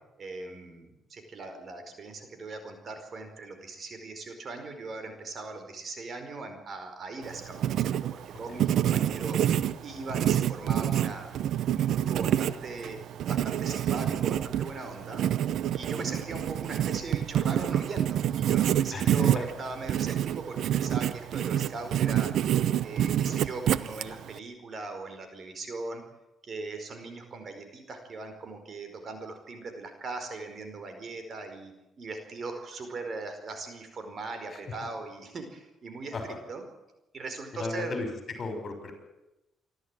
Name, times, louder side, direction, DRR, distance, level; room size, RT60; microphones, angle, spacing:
voice 1, 0.2-9.4 9.8-11.3 11.7-13.0 13.3-15.2 15.7-22.5 22.8-26.0 26.4-36.1 36.5-36.6 37.1-38.0, right 3 dB, 50° right, 7 dB, 4.8 m, -39 dB
Writing, 7.2-24.4, right 11 dB, 75° right, 0.8 m, -27 dB
voice 2, 18.9-19.5 34.5-34.7 36.1-36.4 37.5-38.1 38.4-38.9, left 3 dB, 45° left, 6 dB, 6.1 m, -36 dB
26.0 x 13.0 x 9.0 m, 0.95 s
cardioid pair, 90°, 0 cm